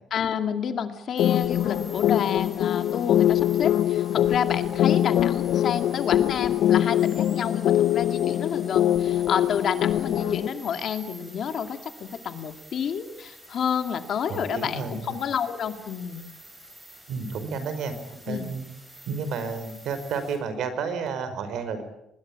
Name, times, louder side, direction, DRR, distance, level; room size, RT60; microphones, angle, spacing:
voice 1, 0.1-16.2 18.3-18.5, left 7 dB, 50° left, 8 dB, 2.2 m, -29 dB
sound 1, 1.2-10.5, left 11 dB, 75° left, 0.9 m, -23 dB
sound 2, 1.2-20.4, right 1 dB, 10° right, 7.2 m, -48 dB
voice 2, 14.3-15.2 17.1-17.9 18.3-18.7 19.1-21.8, right 5 dB, 65° right, 10 dB, 4.9 m, -31 dB
25.0 x 21.5 x 8.7 m, 0.82 s
cardioid pair, 150°, 0 cm